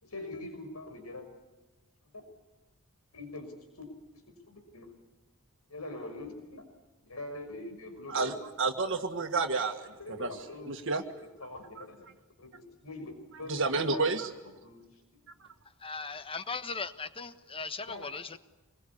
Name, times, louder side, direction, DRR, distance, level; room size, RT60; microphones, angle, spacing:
voice 1, 0.0-1.3 2.1-2.2 3.1-3.9 4.3-4.9 5.7-6.6 7.1-8.4 10.0-10.9 11.4-12.1 12.4-13.5 13.9-14.1 14.6-14.8 17.8-18.1, left 2 dB, 85° left, 5.9 m, -43 dB
voice 2, 8.1-11.0 11.8-11.9 13.4-14.3 15.4-15.5, right 4 dB, 60° right, 1.7 m, -31 dB
voice 3, 15.8-18.4, left 4 dB, 25° left, 1.3 m, -38 dB
26.0 x 22.0 x 8.5 m
head